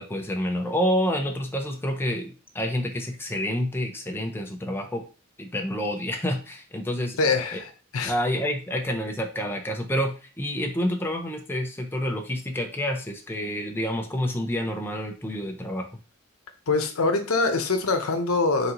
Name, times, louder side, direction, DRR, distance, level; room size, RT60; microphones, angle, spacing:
voice 1, 0.0-5.0 5.4-7.2 7.5-7.6 8.0-15.9, equal, 10° left, 3 dB, 0.6 m, -28 dB
voice 2, 7.2-8.1 16.7-18.7, left 3 dB, 85° left, 6 dB, 0.7 m, -24 dB
4.0 x 3.8 x 2.9 m, 0.33 s
head